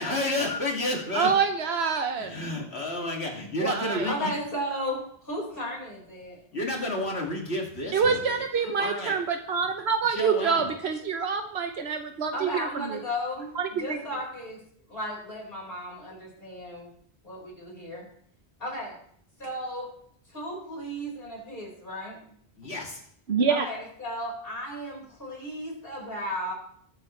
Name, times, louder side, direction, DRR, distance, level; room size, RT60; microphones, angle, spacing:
voice 1, 0.0-1.3 2.2-4.3 6.5-8.2 8.6-9.2 10.1-10.7 22.6-23.0, left 2 dB, 90° left, 0 dB, 2.7 m, -31 dB
voice 2, 1.1-2.3 3.6-4.1 7.9-12.7 13.6-14.0 23.3-23.7, right 6 dB, 85° right, 5 dB, 1.1 m, -26 dB
voice 3, 4.0-6.6 12.3-14.6 14.9-16.9 17.2-18.1 18.6-18.9 19.4-19.9 20.3-22.2 23.5-26.5, equal, 60° left, -3 dB, 5.2 m, -35 dB
21.0 x 7.9 x 3.2 m, 0.65 s
omnidirectional pair, 1.1 m